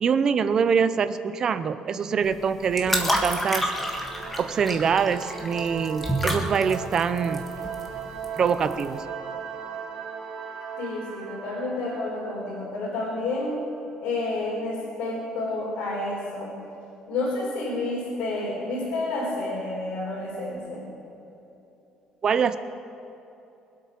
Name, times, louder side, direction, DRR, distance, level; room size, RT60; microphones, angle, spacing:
voice 1, 0.0-3.7 4.4-7.4 8.4-9.0 22.2-22.6, right 6 dB, 30° right, 12 dB, 0.6 m, -24 dB
sound 1, 2.2-9.0, equal, 5° left, 1.5 m, -30 dB
sound 2, 3.1-13.5, right 6 dB, 60° right, 3.7 m, -38 dB
voice 2, 10.8-13.6 14.0-16.5 17.1-20.9, left 2 dB, 90° left, -7 dB, 4.1 m, -30 dB
23.5 x 8.5 x 5.9 m, 3.0 s
cardioid pair, 175°, 2 cm